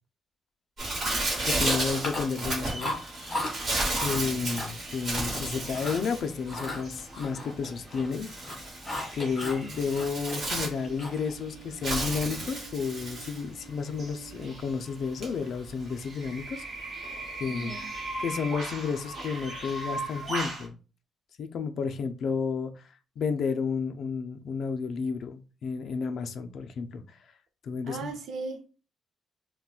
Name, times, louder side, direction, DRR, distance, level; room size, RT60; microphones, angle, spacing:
Bird, 0.8-20.7, right 2 dB, 40° right, 1.0 m, -34 dB
voice 1, 1.4-2.9 3.3-3.6 3.9-8.3 9.1-16.6 17.1-17.2 17.4-17.8 18.2-20.8 21.4-22.9 23.2-27.2 27.6-28.1, left 5 dB, 50° left, 0.3 m, -32 dB
Chewing mastication, 1.9-2.5 2.8-3.5 3.9-4.2 4.6-5.4 5.7-6.1 6.5-8.1 8.4-9.6 9.9-11.3, left 1 dB, 15° left, 1.3 m, -36 dB
sound 1, 3.9-15.0, right 5 dB, ahead, 1.1 m, -52 dB
voice 2, 17.5-17.9 27.9-28.7, right 3 dB, 65° right, 0.5 m, -37 dB
3.6 x 2.1 x 2.3 m
cardioid pair, 175°, 0 cm